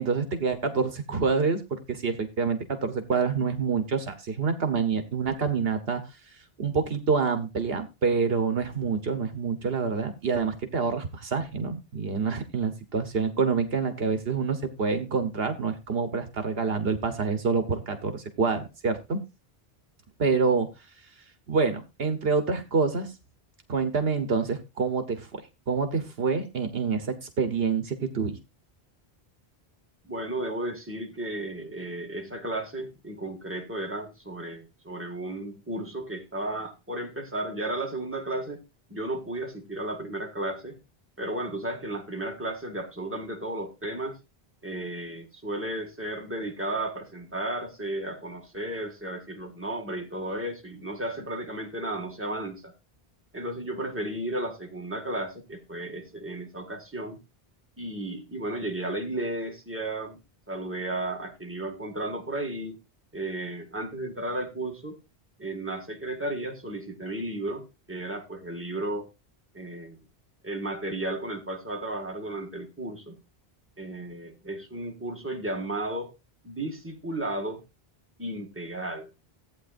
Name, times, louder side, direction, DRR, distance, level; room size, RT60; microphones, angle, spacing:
voice 1, 0.0-6.0 6.3-19.2 20.2-20.7 21.5-23.1 23.7-25.4 25.7-28.4, right 5 dB, 70° right, 1.2 m, -27 dB
voice 2, 30.0-38.6 38.9-40.8 41.2-44.2 44.6-52.7 53.3-57.2 57.8-60.2 60.5-62.8 63.1-65.0 65.4-69.1 69.5-70.0 70.4-73.2 73.8-76.1 76.4-77.6 78.2-79.1, right 1 dB, 10° right, 1.8 m, -34 dB
14.5 x 8.6 x 2.5 m
omnidirectional pair, 1.1 m